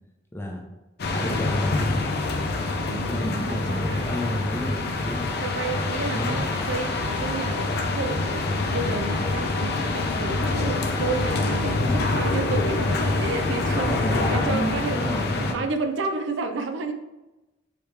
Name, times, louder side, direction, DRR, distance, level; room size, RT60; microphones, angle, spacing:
voice 1, 0.3-0.6 1.1-2.0 3.1-5.4 6.0-6.4 11.7-12.2 13.7-15.7, left 1 dB, 10° left, 1 dB, 0.6 m, -31 dB
sound 1, 1.0-15.5, left 3 dB, 55° left, 0.5 m, -26 dB
voice 2, 2.9-4.9 5.4-15.0 15.4-16.9, right 3 dB, 70° right, 7 dB, 0.4 m, -31 dB
4.9 x 3.0 x 3.3 m, 1.0 s
head